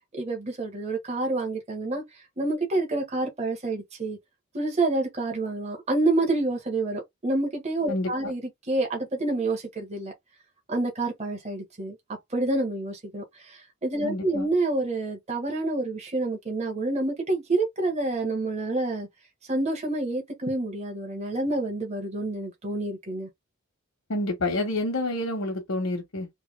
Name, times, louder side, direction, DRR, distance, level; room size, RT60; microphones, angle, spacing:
voice 1, 0.1-4.2 4.5-8.4 8.7-10.1 10.7-19.1 19.5-23.3, right 2 dB, 30° right, 1.3 m, -28 dB
voice 2, 7.9-8.3 14.0-14.5 24.1-26.3, left 1 dB, 75° left, 1.2 m, -28 dB
3.5 x 2.9 x 3.3 m
head